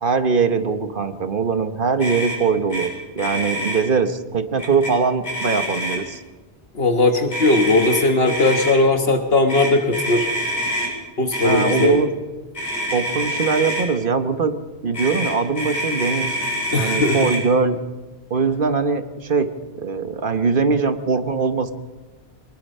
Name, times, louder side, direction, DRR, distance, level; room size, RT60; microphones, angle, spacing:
voice 1, 0.0-6.2 11.4-12.1 12.9-14.5 14.8-16.4 16.7-17.8 18.3-19.5 19.7-21.7, right 5 dB, 55° right, 9 dB, 1.3 m, -21 dB
Motor vehicle (road), 2.0-2.4 2.7-2.9 3.1-3.8 4.6-4.9 5.2-6.1 7.3-8.7 9.5-10.9 11.3-11.9 12.5-13.9 14.9-17.4, equal, 40° left, 6.8 m, -26 dB
voice 2, 6.7-10.3 11.2-12.0 16.7-17.2, left 2 dB, 70° left, 5 dB, 1.6 m, -18 dB
24.5 x 21.0 x 5.5 m, 1.3 s
omnidirectional pair, 1.1 m